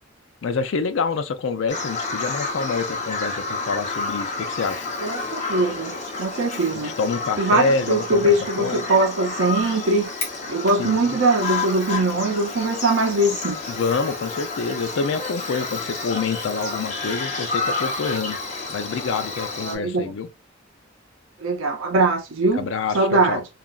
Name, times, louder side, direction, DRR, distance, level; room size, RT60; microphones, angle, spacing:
voice 1, 0.4-4.9 6.8-8.8 10.8-11.2 13.7-18.4 18.7-20.3 22.5-23.4, left 4 dB, 70° left, 0.4 m, -27 dB
Bird vocalization bird call bird song, 1.7-19.8, left 3 dB, 35° left, 0.9 m, -30 dB
voice 2, 5.0-6.9 7.4-10.1 10.5-13.6 19.6-20.1 21.4-22.7 22.9-23.5, right 2 dB, 85° right, 0.6 m, -21 dB
3.0 x 2.4 x 2.3 m
head